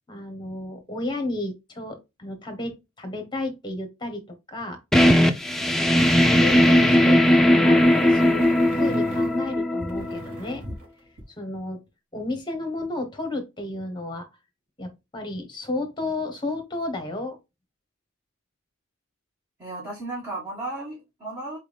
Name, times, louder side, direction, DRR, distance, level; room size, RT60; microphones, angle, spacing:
voice 1, 0.1-4.2 4.5-4.8 5.8-10.6 11.4-11.8 12.1-14.3 14.8-17.4, left 2 dB, 20° left, 1.0 m, -32 dB
sound 1, 4.9-10.4, left 1 dB, ahead, 0.4 m, -18 dB
sound 2, 6.0-10.9 11.2-11.3, right 1 dB, 90° right, 2.8 m, -36 dB
voice 2, 19.6-21.6, right 2 dB, 15° right, 2.0 m, -34 dB
4.3 x 3.5 x 3.4 m
head